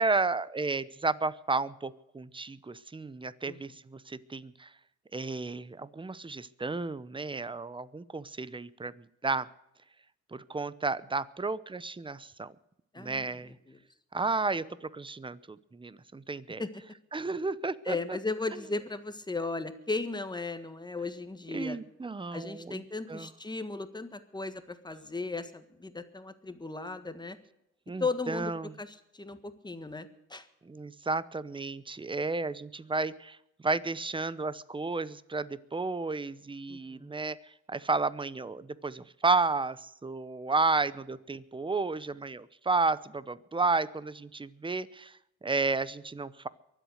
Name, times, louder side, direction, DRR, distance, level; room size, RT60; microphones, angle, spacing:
voice 1, 0.0-4.7 5.1-8.9 9.2-9.5 10.3-12.5 13.0-13.5 14.1-16.6 17.1-18.0 21.5-22.8 23.1-23.3 27.9-28.7 30.7-33.4 33.6-37.4 37.7-46.5, right 3 dB, 15° right, 17 dB, 0.8 m, -32 dB
voice 2, 12.9-13.8 16.6-16.8 17.8-21.8 22.3-27.4 28.0-28.5 28.8-30.5 36.7-37.1, left 3 dB, 15° left, 10 dB, 1.5 m, -36 dB
23.5 x 8.2 x 6.5 m, 0.84 s
cardioid pair, 90°, 30 cm